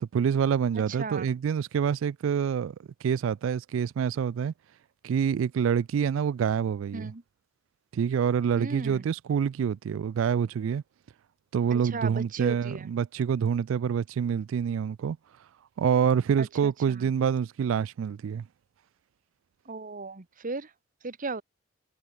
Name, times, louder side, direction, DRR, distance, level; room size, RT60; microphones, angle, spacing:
voice 1, 0.0-2.8 3.0-4.5 5.0-7.1 7.9-10.8 11.5-15.2 15.8-18.4, right 7 dB, 80° right, 0.3 m, -26 dB
voice 2, 0.9-1.3 6.9-7.2 8.6-9.0 11.7-12.9 16.4-17.1 19.7-20.7 21.0-21.4, right 3 dB, 40° right, 1.1 m, -36 dB
head